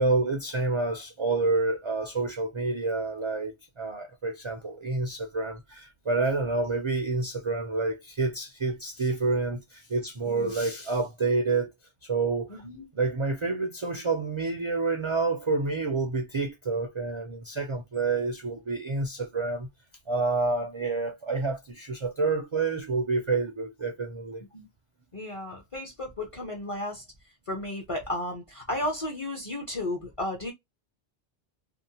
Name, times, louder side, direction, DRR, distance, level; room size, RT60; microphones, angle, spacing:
voice 1, 0.0-11.7 12.0-12.6 12.9-19.7 20.1-24.4, right 3 dB, 45° right, 0.4 m, -28 dB
voice 2, 25.1-27.0 27.5-30.5, left 1 dB, 35° left, 0.7 m, -33 dB
2.7 x 2.1 x 2.7 m
omnidirectional pair, 1.0 m